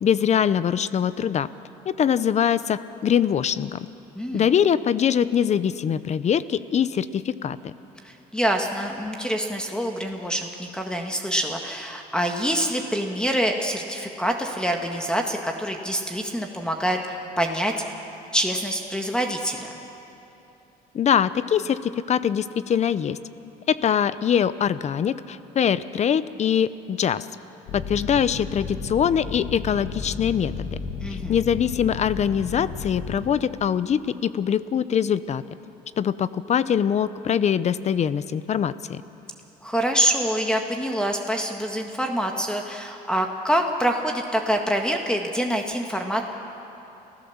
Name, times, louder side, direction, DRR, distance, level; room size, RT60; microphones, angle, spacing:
voice 1, 0.0-1.5 1.9-3.8 4.3-7.7 20.9-23.2 23.7-27.3 27.7-30.7 31.1-35.4 36.0-39.0, left 8 dB, 40° left, 16 dB, 0.7 m, -23 dB
voice 2, 4.2-4.5 8.0-17.7 18.3-19.7 31.0-31.4 39.6-46.2, equal, 5° left, 3 dB, 1.7 m, -26 dB
sound 1, 27.7-33.2, left 5 dB, 70° left, 2.4 m, -34 dB
28.5 x 15.5 x 7.3 m, 2.9 s
cardioid pair, 110°, 17 cm